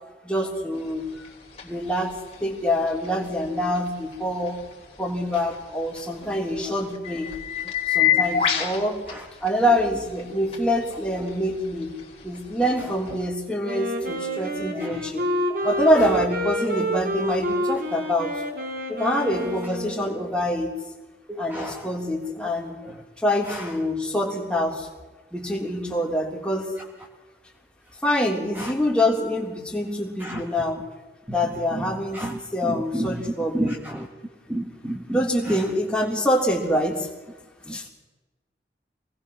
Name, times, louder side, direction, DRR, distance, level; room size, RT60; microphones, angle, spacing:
voice 1, 0.2-1.1 1.6-2.1 2.4-4.6 5.0-7.3 7.9-9.0 9.4-11.9 12.2-15.2 15.6-18.4 18.9-20.8 21.4-22.8 23.2-24.9 25.3-26.7 28.0-30.8 31.3-32.3 32.5-33.8 35.1-37.1 37.7-37.9, left 1 dB, 5° left, -1 dB, 3.4 m, -25 dB
sound 1, 0.7-13.3, left 9 dB, 35° left, 3.1 m, -31 dB
Wind instrument woodwind instrument, 13.6-20.3, equal, 55° right, 3.4 m, -28 dB
voice 2, 21.3-21.9 22.4-22.5 22.8-23.0 23.4-23.7 28.5-28.7 30.2-30.4 31.3-31.4 31.7-33.2 33.5-34.1 34.5-35.6 37.7-37.9, right 1 dB, 10° right, 1 dB, 1.5 m, -32 dB
26.0 x 19.5 x 6.2 m, 1.2 s
head